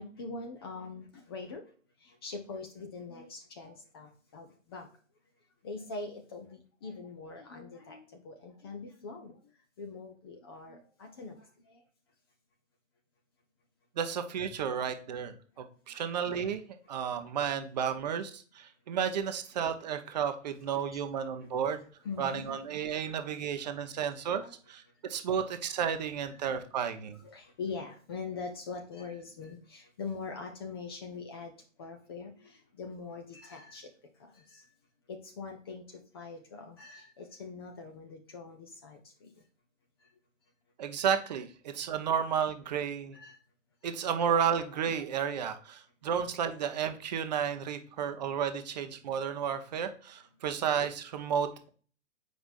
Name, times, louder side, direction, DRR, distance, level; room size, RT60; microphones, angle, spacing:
voice 1, 0.0-1.6 2.0-4.9 5.6-9.4 9.8-11.8 20.9-21.0 22.0-22.4 22.8-23.2 24.3-24.5 26.4-26.5 26.8-26.9 27.2-31.5 31.8-33.9 34.2-34.6 35.1-35.8 36.1-39.3 43.1-43.4, left 4 dB, 20° left, 4 dB, 0.5 m, -43 dB
voice 2, 14.0-16.6 16.9-21.8 22.2-27.2 40.8-43.2 43.8-51.7, right 7 dB, 35° right, 8 dB, 0.7 m, -32 dB
7.8 x 5.1 x 2.5 m, 0.42 s
figure-of-eight pair, 120°, 38 cm